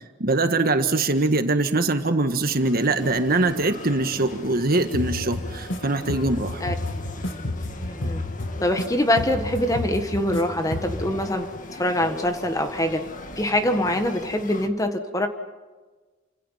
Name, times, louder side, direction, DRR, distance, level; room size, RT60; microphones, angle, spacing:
voice 1, 0.2-6.6, right 2 dB, 50° right, 7 dB, 1.7 m, -22 dB
sound 1, 2.2-14.7, left 2 dB, 45° left, 1.9 m, -39 dB
sound 2, 4.9-5.8 6.1-8.9 9.2-10.4 10.7-11.1, left 1 dB, 75° left, 2.7 m, -30 dB
voice 2, 7.8-8.2 8.6-11.5 11.8-13.0 13.4-15.3, left 1 dB, 20° left, 7 dB, 1.6 m, -24 dB
29.5 x 25.5 x 5.8 m, 1.3 s
head